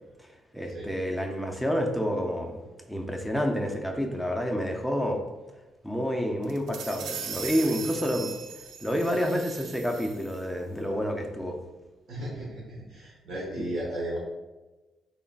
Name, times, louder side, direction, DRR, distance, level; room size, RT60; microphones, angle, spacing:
voice 1, 0.5-2.6 2.9-5.2 5.8-8.3 8.8-11.6 13.6-13.7, equal, ahead, 2 dB, 0.4 m, -29 dB
sound 1, 6.4-10.4, right 6 dB, 85° right, 0.4 m, -39 dB
voice 2, 12.1-12.6 12.9-14.2, right 1 dB, 65° right, -6 dB, 1.1 m, -34 dB
3.8 x 3.7 x 2.3 m, 1.1 s
cardioid pair, 135°, 0 cm